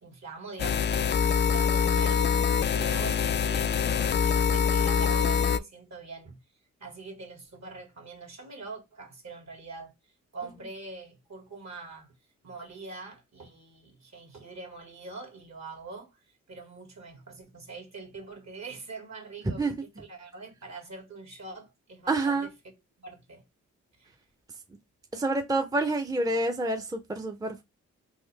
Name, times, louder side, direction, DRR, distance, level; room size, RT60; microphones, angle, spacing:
voice 1, 0.0-6.4 6.8-9.9 10.3-12.1 12.4-16.2 16.5-22.5 23.0-23.4 24.0-24.1, right 3 dB, 55° right, 1.7 m, -44 dB
sound 1, 0.6-5.6, left 7 dB, 35° left, 0.4 m, -25 dB
voice 2, 19.4-19.7 22.1-22.5 25.1-27.6, right 2 dB, 10° right, 0.6 m, -28 dB
3.7 x 2.6 x 3.2 m
supercardioid pair, 50°, 33 cm